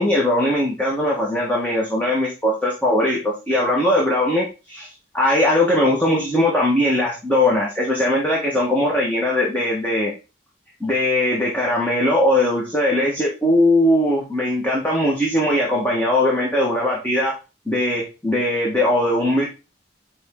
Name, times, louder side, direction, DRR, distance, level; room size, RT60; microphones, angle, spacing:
voice 1, 0.0-4.9 5.1-10.1 10.8-17.3 17.7-19.4, left 1 dB, 10° left, -4 dB, 1.5 m, -20 dB
9.0 x 3.5 x 3.7 m, 0.30 s
head